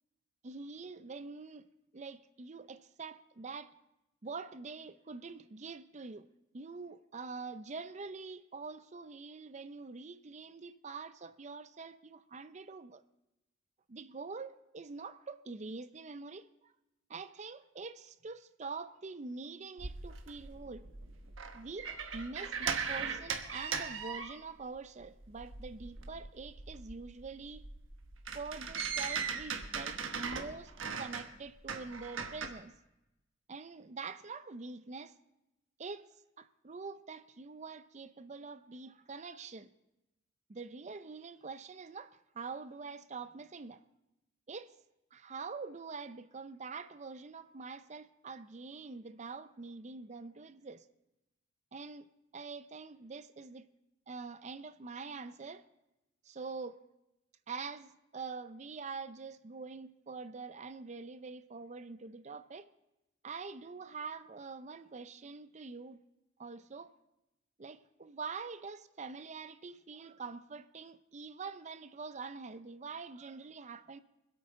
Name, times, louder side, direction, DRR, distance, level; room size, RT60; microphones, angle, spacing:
voice 1, 0.4-1.7 1.9-3.7 4.2-6.3 6.5-13.0 13.9-16.7 17.1-20.9 21.5-27.6 28.3-30.7 31.0-32.7 33.5-35.1 35.8-36.1 36.4-39.7 40.5-43.8 44.5-44.7 45.1-50.9 51.7-52.1 52.3-53.7 54.1-55.7 56.2-56.8 57.5-62.7 63.2-66.0 66.4-66.9 67.6-74.0, right 4 dB, 35° right, 0.5 m, -45 dB
sound 1, 19.8-24.8 25.0-32.5, right 5 dB, 85° right, 1.2 m, -39 dB
25.5 x 8.6 x 3.7 m
head